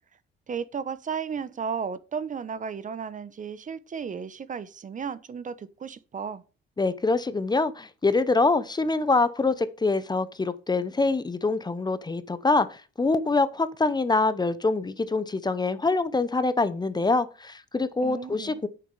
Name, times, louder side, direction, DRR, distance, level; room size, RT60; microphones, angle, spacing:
voice 1, 0.5-6.4 18.0-18.6, right 6 dB, 40° right, 0.8 m, -34 dB
voice 2, 6.8-18.7, left 3 dB, 20° left, 0.8 m, -25 dB
8.5 x 6.8 x 5.4 m
cardioid pair, 90°, 20 cm